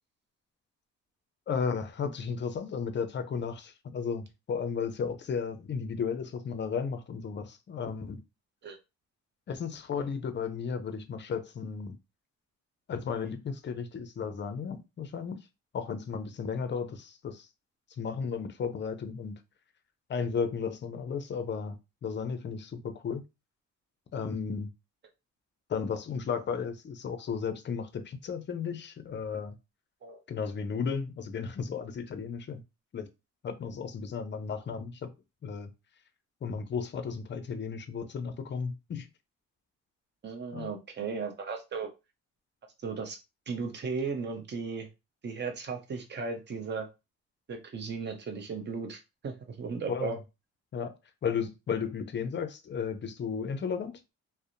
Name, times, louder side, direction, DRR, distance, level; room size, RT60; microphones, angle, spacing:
voice 1, 1.5-8.2 9.5-12.0 12.9-15.4 15.7-17.5 18.0-19.4 20.1-23.2 24.1-24.7 25.7-29.6 30.3-32.6 32.9-33.1 33.4-35.1 35.4-35.7 36.4-39.1 40.5-40.7 49.9-50.2 50.7-50.9 51.2-54.0, left 6 dB, 40° left, 0.5 m, -34 dB
voice 2, 40.2-41.9 42.8-43.2 43.5-44.9 45.2-46.9 47.5-50.2, right 5 dB, 35° right, 0.7 m, -36 dB
2.6 x 2.0 x 2.5 m
cardioid pair, 90°, 30 cm